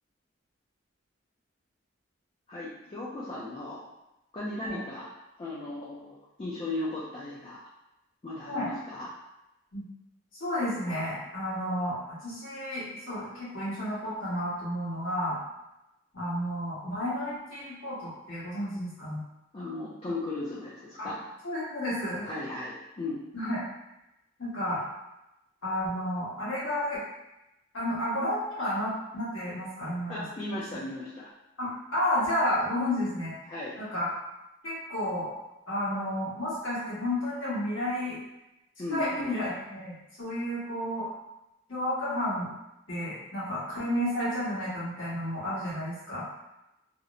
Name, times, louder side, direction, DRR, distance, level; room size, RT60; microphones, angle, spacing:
voice 1, 2.5-3.8 4.3-5.1 5.4-7.6 8.2-9.1 19.5-21.2 22.2-23.2 30.1-31.3 33.5-33.8 38.8-39.3, left 2 dB, 30° left, -7 dB, 0.3 m, -36 dB
voice 2, 10.4-15.4 16.1-19.2 21.0-21.1 21.4-22.3 23.3-23.6 24.4-24.8 25.6-27.0 27.7-30.2 31.6-33.3 33.8-34.1 34.6-35.3 35.7-38.2 38.9-41.1 41.7-42.5 42.9-46.2, left 1 dB, 85° left, -10 dB, 1.3 m, -31 dB
2.8 x 2.0 x 2.5 m, 0.93 s
head